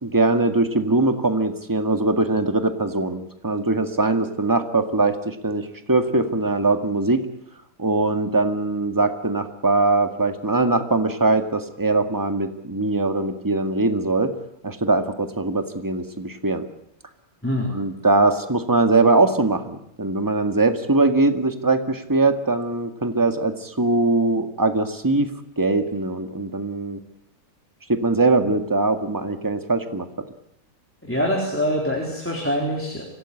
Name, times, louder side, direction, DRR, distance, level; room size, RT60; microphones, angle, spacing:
voice 1, 0.0-7.2 7.8-14.3 14.6-16.6 17.7-25.3 25.6-27.0 27.9-30.1, right 2 dB, 15° right, 7 dB, 1.9 m, -21 dB
voice 2, 17.4-17.7 31.0-33.0, equal, 10° left, -1 dB, 4.1 m, -24 dB
25.5 x 17.5 x 9.9 m, 0.78 s
omnidirectional pair, 1.6 m